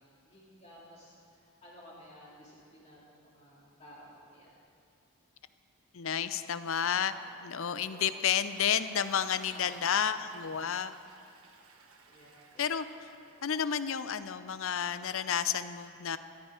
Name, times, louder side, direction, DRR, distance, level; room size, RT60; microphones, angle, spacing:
voice 1, 0.0-4.6 9.5-10.8 12.1-12.6 13.2-13.5, equal, 30° left, -6 dB, 2.3 m, -55 dB
voice 2, 5.9-7.2 7.4-10.9 12.6-12.8 13.4-16.2, left 8 dB, 60° left, 13 dB, 0.5 m, -31 dB
Toilet flush, 6.9-13.7, right 3 dB, 65° right, 1.2 m, -56 dB
14.5 x 11.5 x 4.9 m, 2.5 s
head